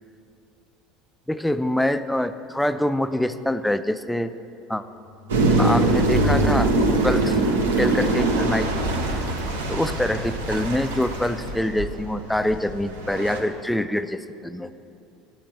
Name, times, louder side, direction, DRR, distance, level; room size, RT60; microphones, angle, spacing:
voice 1, 1.3-4.3 4.7-4.8 5.6-6.7 7.0-7.4 7.8-8.9 9.7-14.7, left 1 dB, 5° left, 12 dB, 0.3 m, -25 dB
sound 1, 5.1-7.5, left 1 dB, 75° left, 0.7 m, -29 dB
sound 2, 5.3-13.4, right 2 dB, 75° right, 0.6 m, -23 dB
7.4 x 4.6 x 6.8 m, 2.7 s
figure-of-eight pair, 65°, 0 cm